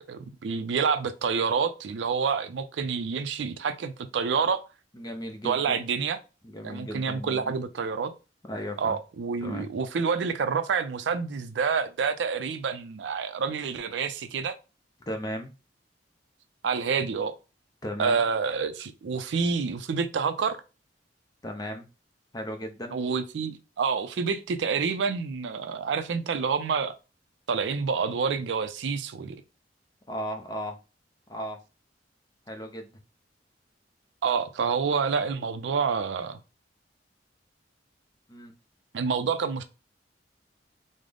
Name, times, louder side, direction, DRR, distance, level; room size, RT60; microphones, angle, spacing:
voice 1, 0.1-4.6 5.4-6.2 6.6-8.1 8.8-14.6 16.6-17.3 18.0-20.6 22.9-26.9 27.5-29.4 34.2-36.4 38.9-39.6, right 5 dB, 75° right, 0.4 m, -28 dB
voice 2, 4.9-5.8 6.4-7.6 8.5-9.0 9.4-9.7 15.1-15.5 17.8-18.2 21.4-21.9 22.3-23.0 30.1-30.8 31.3-31.6 32.5-32.9 38.3-38.5, equal, 20° left, 0.5 m, -36 dB
3.7 x 2.0 x 3.3 m
head